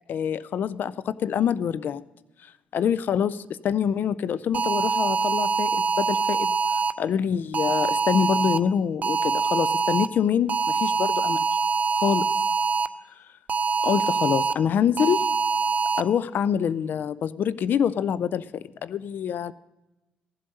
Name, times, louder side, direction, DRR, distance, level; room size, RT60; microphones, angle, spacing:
voice 1, 0.1-2.0 2.7-6.5 7.0-11.4 12.0-12.3 13.8-15.2 16.0-19.5, left 8 dB, 60° left, 18 dB, 0.4 m, -25 dB
sound 1, 4.5-6.9 7.5-8.6 9.0-10.1 10.5-12.9 13.5-14.5 15.0-16.0, right 5 dB, 45° right, 0.6 m, -24 dB
14.5 x 7.7 x 5.3 m, 1.0 s
hypercardioid pair, 50°, 4 cm